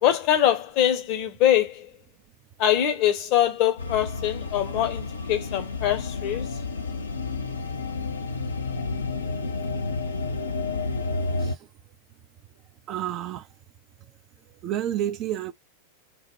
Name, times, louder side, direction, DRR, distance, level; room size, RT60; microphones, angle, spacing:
voice 1, 0.0-1.9 2.6-6.5, left 11 dB, 45° left, 0.7 m, -23 dB
sound 1, 3.8-11.6, left 3 dB, 75° left, 0.5 m, -30 dB
voice 2, 12.9-13.5 14.6-15.5, right 11 dB, 35° right, 0.4 m, -29 dB
3.0 x 2.1 x 3.0 m
figure-of-eight pair, 90°, 0 cm